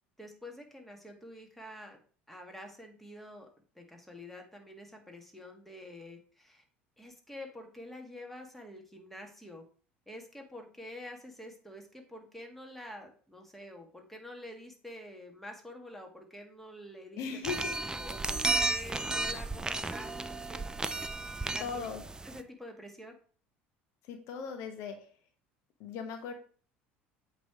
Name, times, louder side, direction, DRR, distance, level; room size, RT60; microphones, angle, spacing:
voice 1, 0.2-2.0 2.3-3.5 3.7-6.6 7.0-9.6 10.1-17.2 18.0-20.6 21.5-21.9 22.2-23.1, left 1 dB, 5° left, 3 dB, 1.8 m, -47 dB
voice 2, 17.2-17.8 21.6-22.0 24.1-25.1 25.8-26.3, left 6 dB, 60° left, 6 dB, 1.0 m, -38 dB
sound 1, 17.4-22.4, right 2 dB, 10° right, 0.5 m, -33 dB
8.0 x 3.2 x 4.9 m, 0.41 s
hypercardioid pair, 70°, 6 cm